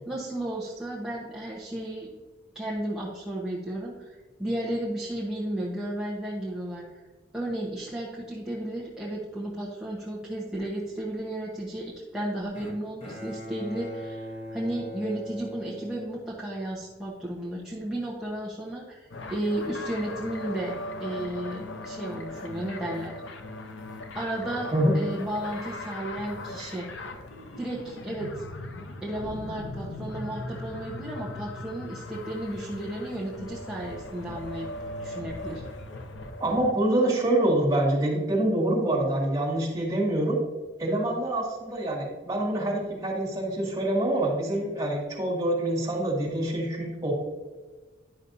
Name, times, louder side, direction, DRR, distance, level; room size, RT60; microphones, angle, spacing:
voice 1, 0.1-2.1 2.5-7.0 7.3-20.7 21.0-23.1 24.1-26.9 27.6-28.4 29.0-34.7 35.0-35.6, right 1 dB, 5° right, -6 dB, 1.0 m, -33 dB
Bowed string instrument, 12.5-16.8, equal, 35° left, 1.2 m, -41 dB
sound 1, 19.1-36.7, left 2 dB, 80° left, 0.8 m, -39 dB
voice 2, 36.4-40.4 40.8-47.1, right 1 dB, 20° right, -4 dB, 2.2 m, -26 dB
10.5 x 6.2 x 2.7 m, 1.3 s
head